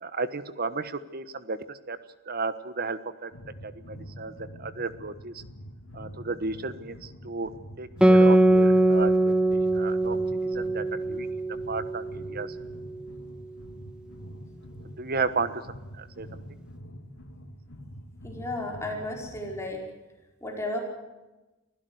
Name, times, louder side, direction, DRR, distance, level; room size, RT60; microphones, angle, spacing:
voice 1, 0.0-2.0 2.3-3.3 3.6-4.3 4.6-5.4 5.9-7.5 7.8-10.2 10.5-11.3 11.7-12.5 15.0-15.5 16.0-16.3, right 4 dB, 50° right, 13 dB, 1.3 m, -33 dB
sound 1, 3.3-19.7, equal, 85° left, 3.0 m, -45 dB
Guitar, 8.0-12.9, right 1 dB, 5° right, 1.4 m, -22 dB
voice 2, 18.2-19.8 20.4-20.8, left 1 dB, 15° left, 0 dB, 5.1 m, -33 dB
24.5 x 16.0 x 8.0 m, 1.1 s
head